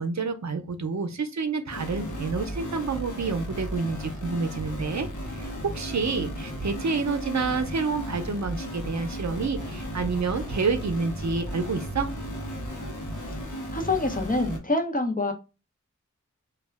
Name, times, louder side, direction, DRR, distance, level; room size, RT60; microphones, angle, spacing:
voice 1, 0.0-5.1 5.3-12.1, right 4 dB, 65° right, 8 dB, 0.5 m, -28 dB
sound 1, 1.7-14.6, equal, 80° left, 0.7 m, -35 dB
voice 2, 13.7-15.3, left 2 dB, 30° left, 3 dB, 0.7 m, -26 dB
2.3 x 2.1 x 3.4 m, 0.29 s
wide cardioid pair, 40°, 30 cm